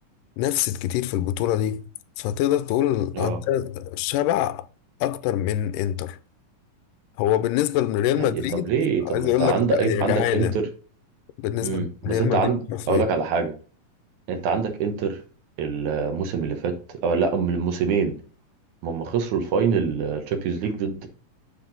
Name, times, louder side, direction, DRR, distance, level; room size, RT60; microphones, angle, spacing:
voice 1, 0.4-1.9 2.2-4.7 5.0-6.2 7.2-8.7 9.1-10.6 11.4-13.1, left 12 dB, 85° left, 2.1 m, -24 dB
voice 2, 8.2-10.7 11.6-12.6 12.9-13.5 14.3-15.2 15.6-18.2 18.8-21.1, right 5 dB, 70° right, 2.3 m, -25 dB
7.3 x 5.8 x 3.9 m
omnidirectional pair, 3.7 m